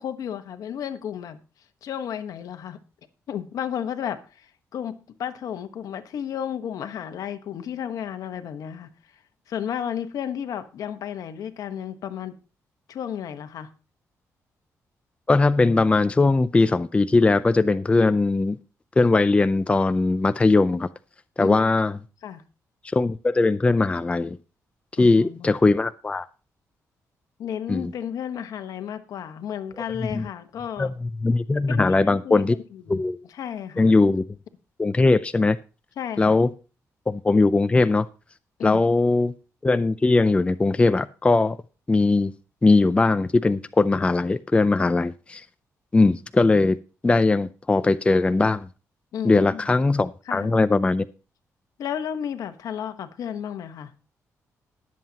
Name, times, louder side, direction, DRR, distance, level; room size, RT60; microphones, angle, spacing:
voice 1, 0.0-1.4 1.8-2.8 3.3-4.9 5.2-8.9 9.5-12.3 12.9-13.7 21.4-21.7 22.2-22.4 25.0-25.6 27.4-30.9 31.7-33.0 33.3-33.9 36.0-36.4 38.6-38.8 49.1-49.7 50.3-50.5 51.8-53.9, left 9 dB, 75° left, 1.2 m, -33 dB
voice 2, 15.3-18.6 19.0-20.9 21.4-22.0 22.9-24.4 25.0-26.3 27.7-27.9 30.0-30.2 30.8-32.6 32.9-33.2 33.8-34.2 34.8-35.6 36.2-36.5 37.1-38.1 38.6-39.3 39.6-41.6 41.9-42.3 42.6-45.4 45.9-46.8 47.0-48.7 49.2-51.0, left 3 dB, 20° left, 0.5 m, -20 dB
20.0 x 7.6 x 2.9 m
cardioid pair, 95°, 6 cm